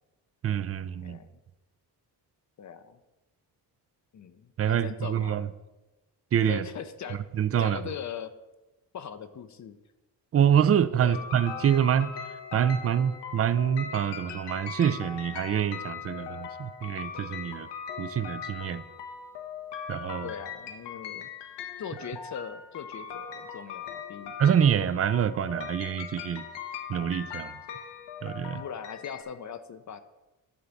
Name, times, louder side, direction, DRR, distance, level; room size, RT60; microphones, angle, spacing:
voice 1, 0.4-1.2 4.6-5.5 6.3-6.6 7.4-7.8 10.3-12.1 12.5-17.7 18.0-18.8 19.9-20.3 24.4-26.4 26.9-27.5 28.2-28.6, right 9 dB, 35° right, 15 dB, 0.4 m, -26 dB
voice 2, 2.6-3.0 4.1-5.4 6.5-7.2 7.6-8.3 8.9-9.8 11.0-11.2 20.2-21.3 21.8-24.3 28.5-30.0, left 7 dB, 45° left, 10 dB, 0.6 m, -40 dB
sound 1, 11.1-29.2, left 7 dB, 85° left, 1.2 m, -40 dB
11.5 x 3.9 x 7.1 m, 1.1 s
cardioid pair, 140°, 41 cm